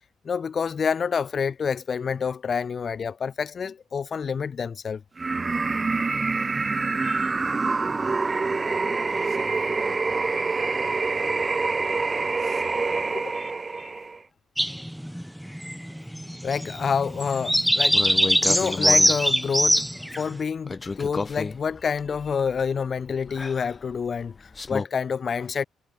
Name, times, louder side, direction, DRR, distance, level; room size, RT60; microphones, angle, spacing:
voice 1, 0.2-5.0 7.0-7.3 13.1-13.5 13.8-13.9 16.4-18.1 18.5-19.8 20.1-25.6, left 6 dB, 45° left, 0.6 m, -28 dB
sound 1, 5.2-14.2, right 4 dB, 30° right, 0.4 m, -26 dB
voice 2, 6.3-6.8 9.2-13.3, right 7 dB, 50° right, 7.2 m, -52 dB
sound 2, 14.6-20.3, equal, ahead, 1.2 m, -23 dB
sound 3, 17.9-19.2 20.7-24.9, left 3 dB, 25° left, 0.9 m, -33 dB
cardioid pair, 90°, 0 cm